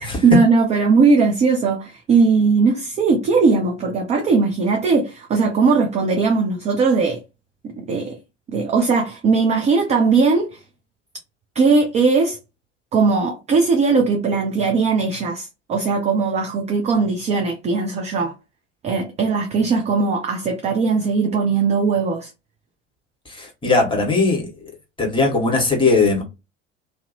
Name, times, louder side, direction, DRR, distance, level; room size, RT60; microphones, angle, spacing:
voice 1, 0.0-7.2 7.8-8.2 8.5-10.6 11.6-12.4 12.9-18.3 18.8-22.3, right 4 dB, 20° right, 0.4 m, -19 dB
voice 2, 23.3-24.5 25.0-26.2, left 3 dB, 15° left, 1.2 m, -19 dB
2.5 x 2.0 x 2.7 m
figure-of-eight pair, 70°, 37 cm